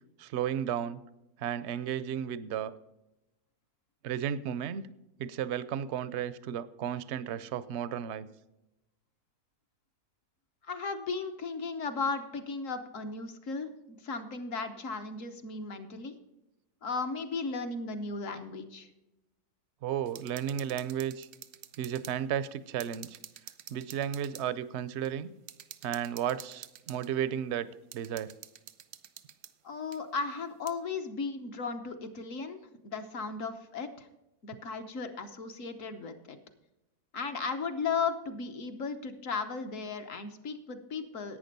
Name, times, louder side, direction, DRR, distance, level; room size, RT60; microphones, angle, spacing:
voice 1, 0.2-1.0 1.4-2.7 4.0-4.8 5.2-8.3 19.8-21.3 21.8-23.2 23.7-25.3 25.8-27.7 27.9-28.3, right 9 dB, 65° right, 16 dB, 0.7 m, -33 dB
voice 2, 10.6-16.1 16.8-18.9 29.6-32.6 32.8-34.1 34.4-36.4 37.1-41.4, left 4 dB, 55° left, 7 dB, 1.3 m, -36 dB
sound 1, 20.1-22.2 22.4-22.5 22.8-24.5 25.0-25.1 25.5-27.1 27.9-29.5 29.9-30.0 30.7-30.8, right 11 dB, 85° right, 1.3 m, -48 dB
11.0 x 8.8 x 5.3 m, 0.92 s
omnidirectional pair, 1.7 m